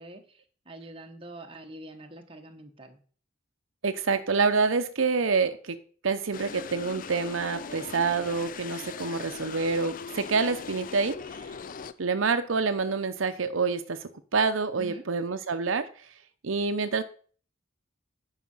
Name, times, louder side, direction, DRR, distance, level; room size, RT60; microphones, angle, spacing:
voice 1, 0.0-3.0 14.8-15.1, right 1 dB, 25° right, 4 dB, 1.3 m, -45 dB
voice 2, 3.8-5.8 6.0-11.4 12.0-15.9 16.4-17.0, right 4 dB, 80° right, 10 dB, 0.7 m, -27 dB
sound 1, 6.3-11.9, left 5 dB, 45° left, 0.4 m, -40 dB
9.5 x 5.7 x 5.5 m, 0.43 s
head